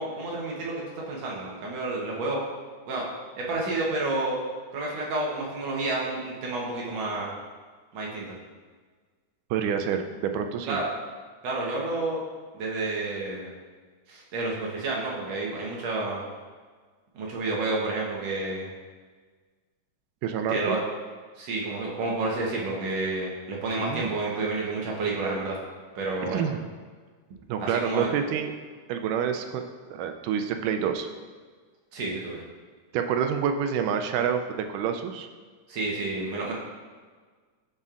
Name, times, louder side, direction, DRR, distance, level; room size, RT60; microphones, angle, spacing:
voice 1, 0.0-2.4 2.9-3.1 3.4-4.4 4.7-7.3 7.9-8.4 10.7-10.9 11.4-12.2 12.5-13.5 14.1-16.2 17.2-18.7 20.5-20.8 21.4-25.6 26.0-26.5 27.6-28.1 31.9-32.4 35.7-36.5, right 2 dB, 65° right, -3 dB, 2.0 m, -30 dB
voice 2, 9.5-10.8 20.2-20.8 23.7-24.1 26.2-26.6 27.5-28.5 28.9-29.6 29.9-31.1 32.9-35.3, right 7 dB, 90° right, 6 dB, 2.1 m, -28 dB
11.0 x 5.2 x 2.5 m, 1.5 s
omnidirectional pair, 3.6 m